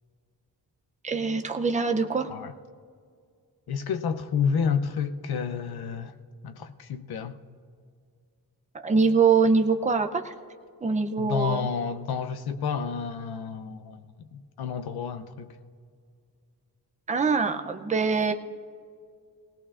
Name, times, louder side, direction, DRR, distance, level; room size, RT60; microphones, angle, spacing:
voice 1, 1.0-2.3 8.8-10.3 10.8-11.7 17.1-18.3, right 4 dB, 20° right, 0.5 m, -23 dB
voice 2, 3.7-6.1 6.4-7.4 11.2-15.5, left 6 dB, 85° left, 0.7 m, -30 dB
19.0 x 18.0 x 2.5 m
wide cardioid pair, 175°, 37 cm